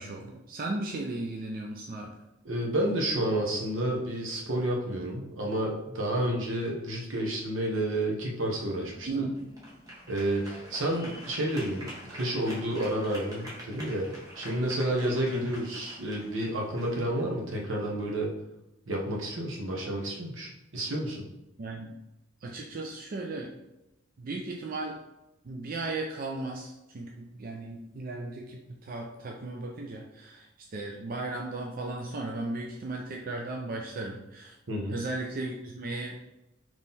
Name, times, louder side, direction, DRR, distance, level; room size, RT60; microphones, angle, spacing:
voice 1, 0.0-2.1 9.1-9.3 15.3-15.4 21.6-22.0 22.4-23.5 24.2-25.0 25.4-34.5 34.9-36.2, right 2 dB, 45° right, 0 dB, 0.4 m, -36 dB
voice 2, 2.4-9.3 10.1-14.1 14.3-18.3 18.9-21.2 34.7-35.0, right 1 dB, 75° right, -1 dB, 1.0 m, -30 dB
sound 1, 8.1-18.1, equal, 20° right, 1.2 m, -47 dB
3.6 x 3.1 x 4.0 m, 0.94 s
head